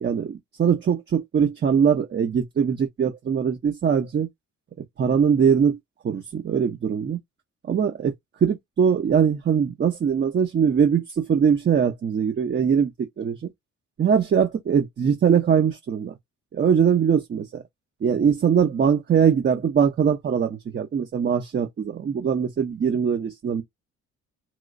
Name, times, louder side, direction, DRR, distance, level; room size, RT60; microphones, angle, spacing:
voice 1, 0.0-4.3 5.0-5.8 6.0-7.2 7.7-8.1 8.4-13.5 14.0-16.1 16.5-17.6 18.0-23.6, right 7 dB, 35° right, 0.6 m, -22 dB
3.0 x 3.0 x 2.5 m
cardioid pair, 90°, 30 cm